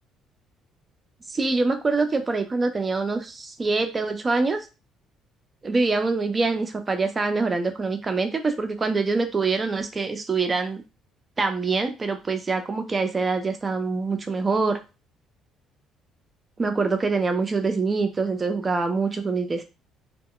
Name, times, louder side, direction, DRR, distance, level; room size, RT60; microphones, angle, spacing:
voice 1, 1.3-4.7 5.6-10.8 11.4-14.8 16.6-19.6, right 3 dB, 30° right, 7 dB, 0.6 m, -25 dB
2.2 x 2.1 x 3.7 m, 0.29 s
cardioid pair, 90°, 0 cm